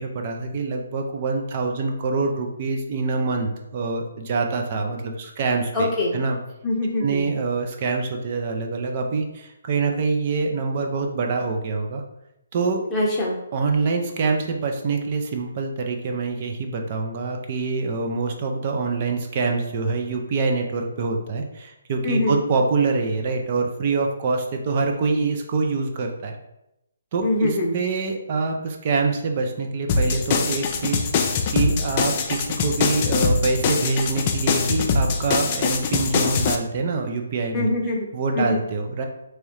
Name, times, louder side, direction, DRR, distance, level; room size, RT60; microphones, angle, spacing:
voice 1, 0.0-6.4 7.0-12.0 12.5-12.8 13.5-26.4 27.1-31.1 31.5-37.7 38.1-39.0, right 4 dB, 35° right, 2 dB, 0.5 m, -25 dB
voice 2, 5.7-6.2 6.6-7.3 12.9-13.4 22.0-22.4 27.2-27.7 37.5-38.1 38.3-38.6, left 2 dB, 10° left, -5 dB, 0.9 m, -23 dB
sound 1, 29.9-36.6, left 5 dB, 30° left, 0.4 m, -23 dB
3.5 x 3.0 x 3.1 m, 0.87 s
figure-of-eight pair, 135°, 0 cm